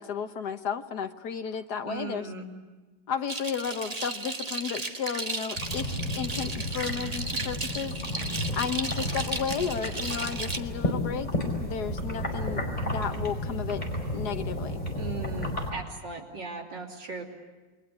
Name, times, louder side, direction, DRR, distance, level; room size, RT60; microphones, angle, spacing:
voice 1, 0.0-2.3 3.1-7.9 8.5-11.3 11.6-13.9 14.1-14.8, left 7 dB, 60° left, 8 dB, 1.6 m, -33 dB
voice 2, 1.8-2.5 15.0-17.2, right 4 dB, 65° right, 1 dB, 3.6 m, -38 dB
sound 1, 3.3-10.6, right 3 dB, 25° right, 1.0 m, -35 dB
sound 2, 5.6-15.7, left 1 dB, 20° left, 4.7 m, -32 dB
29.0 x 22.0 x 8.3 m, 1.3 s
omnidirectional pair, 2.1 m